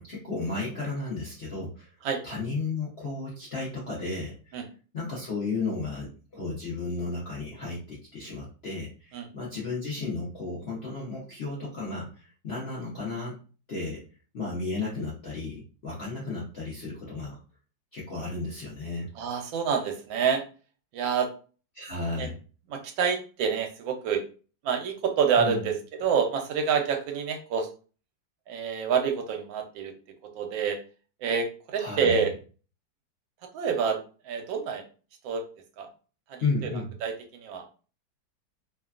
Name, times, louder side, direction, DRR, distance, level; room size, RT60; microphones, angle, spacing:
voice 1, 0.0-1.9 2.2-4.6 4.9-13.4 13.7-14.0 14.3-17.4 17.9-19.1 21.7-22.3 25.4-25.7 31.8-32.3 36.4-36.9, left 3 dB, 60° left, -6 dB, 0.7 m, -33 dB
voice 2, 19.2-20.4 20.9-21.3 22.1-22.3 22.7-24.2 24.6-27.7 28.5-29.9 30.2-30.8 31.2-32.3 33.5-34.0 34.2-34.8 35.2-35.4 35.8-35.9 36.3-36.7 37.0-37.7, right 6 dB, 80° right, 4 dB, 1.3 m, -27 dB
3.2 x 2.2 x 2.4 m, 0.37 s
omnidirectional pair, 2.1 m